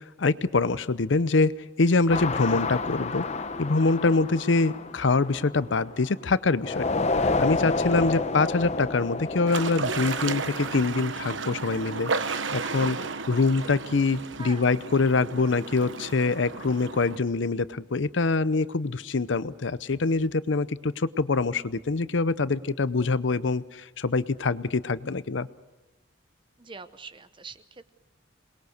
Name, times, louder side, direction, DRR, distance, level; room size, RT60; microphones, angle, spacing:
voice 1, 0.0-1.5 1.8-3.2 3.6-6.8 7.2-13.0 13.3-25.5, left 3 dB, 70° left, 16 dB, 0.7 m, -25 dB
sound 1, 2.1-6.1 6.6-10.8, left 3 dB, 35° left, 0.8 m, -30 dB
sound 2, 9.5-17.2, right 4 dB, 75° right, 1.1 m, -33 dB
voice 2, 14.4-14.7 26.6-27.9, right 4 dB, 25° right, 12 dB, 0.8 m, -44 dB
27.5 x 20.5 x 6.6 m, 1.1 s
head